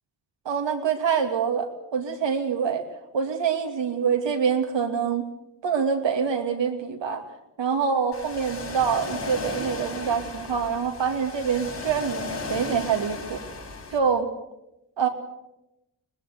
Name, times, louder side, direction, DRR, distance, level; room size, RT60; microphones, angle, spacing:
voice 1, 0.4-2.9 3.1-5.2 5.6-7.3 7.6-13.4 13.9-14.3 15.0-15.1, right 6 dB, 70° right, 5 dB, 2.7 m, -25 dB
Ocean, 8.1-14.0, left 3 dB, 60° left, 6.4 m, -35 dB
23.5 x 20.0 x 6.8 m, 0.90 s
hypercardioid pair, 40°, 46 cm